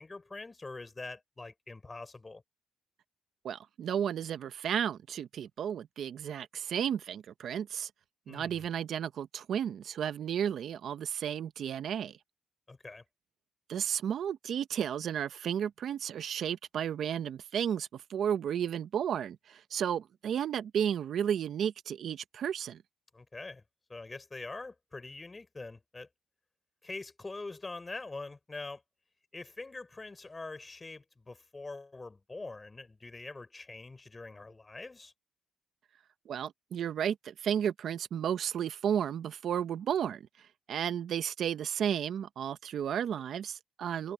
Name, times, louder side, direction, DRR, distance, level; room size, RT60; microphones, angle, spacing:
voice 1, 0.0-2.4 8.3-8.7 12.7-13.0 23.1-23.6 23.9-26.1 26.8-28.8 29.3-35.1, left 3 dB, 20° left, 5.2 m, -44 dB
voice 2, 3.4-7.9 8.3-12.1 13.7-22.8 36.3-40.2 40.7-44.1, right 9 dB, 65° right, 1.0 m, -33 dB
cardioid pair, 90°, 0 cm